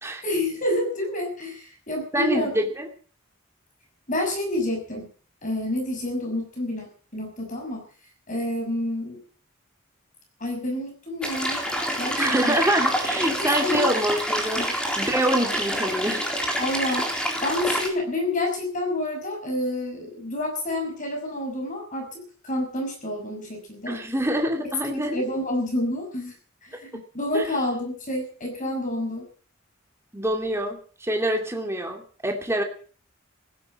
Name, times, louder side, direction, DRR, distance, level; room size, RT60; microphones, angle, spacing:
voice 1, 0.2-2.5 4.1-5.1 5.4-6.9 7.1-7.8 8.3-9.2 10.4-11.6 12.0-12.6 13.4-13.9 14.6-14.7 16.6-17.1 17.4-24.0 25.1-26.3 26.6-29.3, left 1 dB, 40° left, 2 dB, 6.3 m, -28 dB
voice 2, 2.1-2.9 12.2-16.3 23.9-25.2 27.3-27.6 30.1-32.6, right 1 dB, 15° right, 3 dB, 2.4 m, -26 dB
sound 1, 11.2-17.9, equal, 5° left, 3.7 m, -27 dB
16.0 x 12.0 x 7.5 m, 0.43 s
head